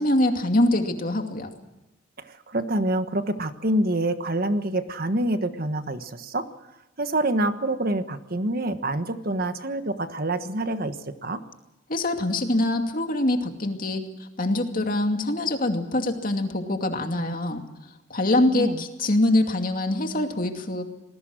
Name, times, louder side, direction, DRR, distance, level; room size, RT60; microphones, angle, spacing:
voice 1, 0.0-1.5 11.9-17.6 18.1-20.8, left 1 dB, 45° left, 5 dB, 2.5 m, -24 dB
voice 2, 2.2-6.5 7.0-11.4 18.5-18.8, right 1 dB, 50° right, 9 dB, 1.4 m, -26 dB
28.0 x 20.0 x 6.3 m, 1.0 s
head